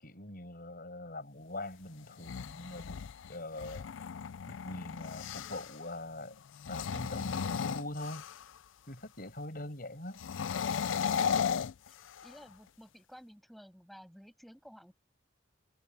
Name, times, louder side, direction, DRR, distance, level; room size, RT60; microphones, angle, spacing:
voice 1, 0.0-4.1 4.5-6.4 6.7-8.2 8.9-10.2, left 1 dB, 50° left, 5.9 m, -43 dB
sound 1, 2.0-5.8 6.5-8.6 10.1-12.4, left 7 dB, 75° left, 0.4 m, -35 dB
voice 2, 12.2-14.9, equal, ahead, 6.8 m, -53 dB
head